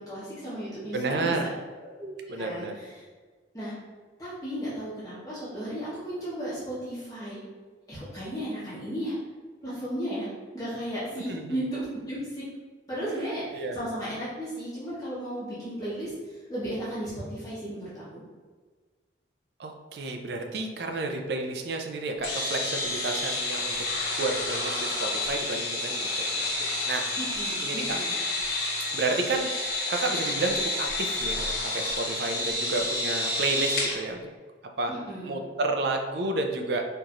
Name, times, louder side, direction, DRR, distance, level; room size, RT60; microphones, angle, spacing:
voice 1, 0.0-1.3 2.0-2.1 2.3-2.9 3.5-3.7 4.2-7.4 7.9-9.1 9.6-10.3 10.5-12.4 12.9-18.2 27.2-28.2 34.9-35.4, equal, 20° left, -11 dB, 1.2 m, -35 dB
voice 2, 0.9-1.5 2.3-2.7 11.3-11.6 13.5-13.8 19.6-23.8 24.2-26.6 26.9-27.0 27.6-28.0 28.9-29.5 29.9-34.2 34.8-34.9 35.2-36.8, right 2 dB, 60° right, 4 dB, 0.5 m, -31 dB
sound 1, 22.2-34.0, left 2 dB, 55° left, 1.2 m, -30 dB
4.4 x 2.9 x 2.5 m, 1.4 s
head